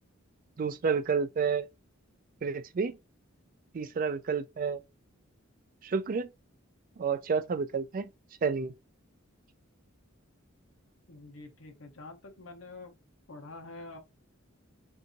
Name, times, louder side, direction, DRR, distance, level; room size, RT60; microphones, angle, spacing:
voice 1, 0.6-1.7 2.4-3.0 3.7-4.8 5.8-6.3 7.0-8.1 8.4-8.7, right 5 dB, 40° right, 0.4 m, -30 dB
voice 2, 11.1-12.9 13.3-14.0, left 2 dB, 70° left, 0.9 m, -46 dB
4.7 x 2.7 x 2.6 m
head